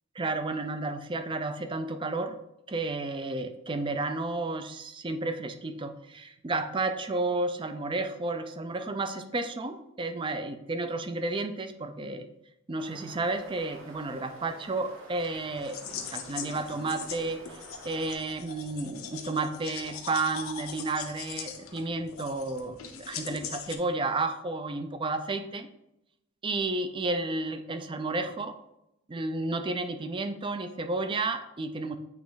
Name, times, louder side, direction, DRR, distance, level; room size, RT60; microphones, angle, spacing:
voice 1, 0.2-2.4 2.7-12.3 12.7-17.6 17.8-25.7 26.4-28.6 29.1-32.0, right 2 dB, 25° right, 9 dB, 0.4 m, -32 dB
sound 1, 12.8-18.1, right 2 dB, 70° right, 1.3 m, -49 dB
sound 2, 15.2-23.8, left 7 dB, 80° left, 0.7 m, -41 dB
8.0 x 3.1 x 3.9 m, 0.84 s
head